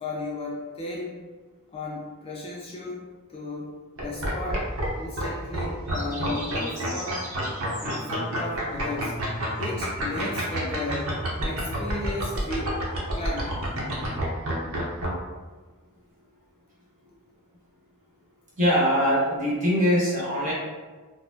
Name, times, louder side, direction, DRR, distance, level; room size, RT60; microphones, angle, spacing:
voice 1, 0.0-1.2 1.7-4.7 5.0-7.2 7.8-9.2 9.5-11.2 11.4-12.8 13.1-13.6, left 2 dB, 25° left, -3 dB, 0.4 m, -35 dB
sound 1, 4.0-4.9 5.2-5.3 5.5-15.1, right 1 dB, 65° right, 0.8 m, -28 dB
sound 2, 4.6-11.0, equal, 15° right, 1.3 m, -43 dB
voice 2, 18.6-20.5, equal, 35° right, -7 dB, 1.3 m, -22 dB
4.2 x 2.0 x 2.7 m, 1.3 s
head